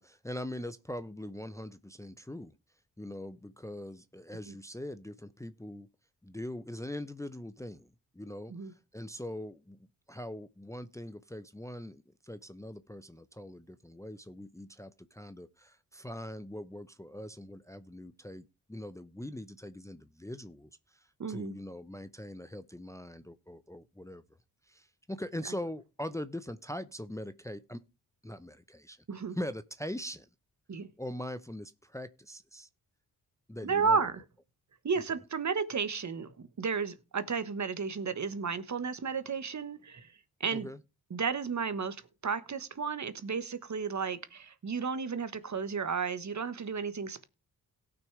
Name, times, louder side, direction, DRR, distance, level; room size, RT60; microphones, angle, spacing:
voice 1, 0.0-2.5 3.0-5.9 6.2-9.8 10.1-24.2 24.6-27.8 28.2-29.0 29.3-30.3 31.0-32.7 33.5-34.1 40.5-40.8, left 1 dB, 10° left, 0.7 m, -42 dB
voice 2, 21.2-21.5 29.1-29.4 30.7-30.9 33.6-34.2 34.8-40.1 40.4-40.7 41.1-47.2, right 5 dB, 50° right, 1.3 m, -33 dB
17.5 x 6.2 x 3.3 m
cardioid pair, 75°, 38 cm